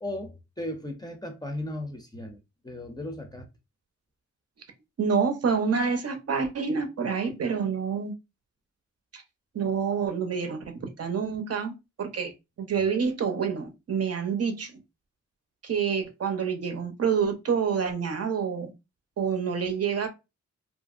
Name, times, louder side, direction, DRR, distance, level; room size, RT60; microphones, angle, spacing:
voice 1, 0.0-2.4 2.6-3.5, left 1 dB, 15° left, 0.5 m, -36 dB
voice 2, 5.0-8.1 9.1-9.2 9.5-12.3 12.6-14.7 15.6-18.7 19.2-20.1, right 6 dB, 55° right, 0.6 m, -27 dB
2.8 x 2.5 x 2.4 m
wide cardioid pair, 115°, 29 cm